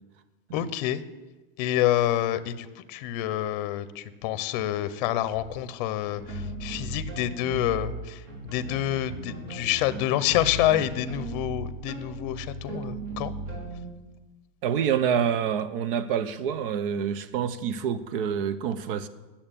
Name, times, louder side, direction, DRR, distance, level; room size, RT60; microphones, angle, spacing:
voice 1, 0.5-1.0 1.6-8.2 8.5-13.3, left 13 dB, 50° left, 0.6 m, -27 dB
sound 1, 5.2-5.5 6.1-7.9 8.2-13.9, right 2 dB, 50° right, 4.1 m, -37 dB
voice 2, 14.6-19.1, right 8 dB, 70° right, 0.8 m, -27 dB
8.8 x 7.2 x 8.9 m
supercardioid pair, 170°, 29 cm